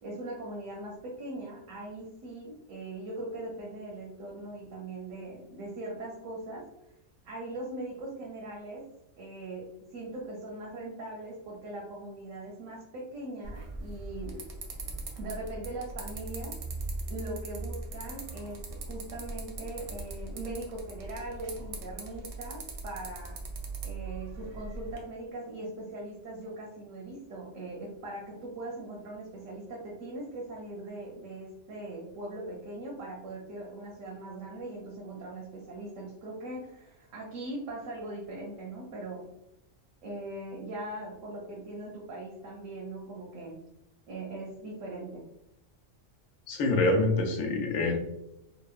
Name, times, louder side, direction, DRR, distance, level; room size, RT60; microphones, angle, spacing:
voice 1, 0.0-6.7 7.2-8.9 9.2-14.5 15.1-16.6 17.1-23.4 23.8-39.3 40.0-43.6 44.1-45.3, right 2 dB, 90° right, -3 dB, 1.0 m, -40 dB
sound 1, 13.4-25.0, right 2 dB, 65° right, 0.7 m, -40 dB
voice 2, 46.5-48.0, left 2 dB, 85° left, 2 dB, 1.0 m, -26 dB
2.8 x 2.0 x 2.3 m, 0.85 s
omnidirectional pair, 1.3 m